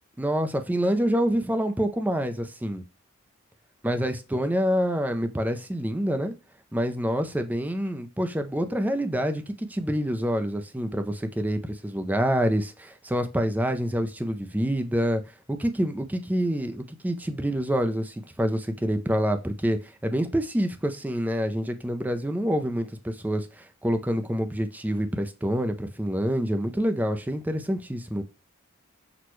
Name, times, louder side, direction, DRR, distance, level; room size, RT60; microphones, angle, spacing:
voice 1, 0.2-2.8 3.8-6.3 6.7-15.2 15.5-28.2, equal, 10° right, 0.4 m, -27 dB
6.0 x 2.2 x 3.0 m
head